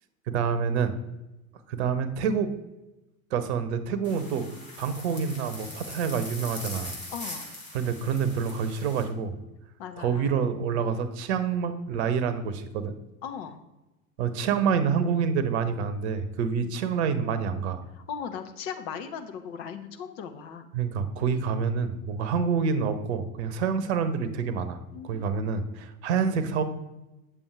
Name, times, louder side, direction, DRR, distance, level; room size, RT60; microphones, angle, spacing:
voice 1, 0.3-0.9 1.7-2.5 3.3-4.5 4.8-7.0 7.7-9.4 10.0-12.9 14.2-17.8 20.7-26.6, right 6 dB, 50° right, 11 dB, 0.9 m, -27 dB
sound 1, 4.0-9.0, left 1 dB, 15° left, 3.2 m, -41 dB
voice 2, 7.1-7.5 9.8-10.4 13.2-13.6 16.6-16.7 17.9-20.7 24.9-25.6, left 7 dB, 45° left, 8 dB, 1.0 m, -38 dB
8.6 x 7.0 x 3.4 m, 1.0 s
figure-of-eight pair, 80°, 43 cm